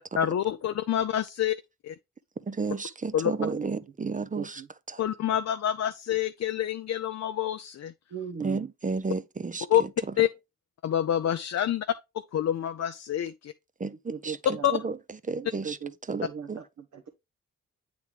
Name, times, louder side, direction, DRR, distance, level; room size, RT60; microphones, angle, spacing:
voice 1, 0.1-1.6 1.8-1.9 3.1-3.3 5.0-7.9 9.7-9.8 10.2-10.3 10.8-11.9 12.3-13.5 14.6-14.7, left 10 dB, 55° left, 0.5 m, -27 dB
voice 2, 2.4-4.6 4.9-5.0 8.4-9.7 13.8-14.4 14.7-15.0 15.3-15.8 16.1-16.6, right 4 dB, 25° right, 0.6 m, -32 dB
voice 3, 4.3-4.7 8.1-8.7 14.1-14.7 15.3-17.1, right 7 dB, 60° right, 1.1 m, -37 dB
8.3 x 3.4 x 3.3 m
supercardioid pair, 45°, 32 cm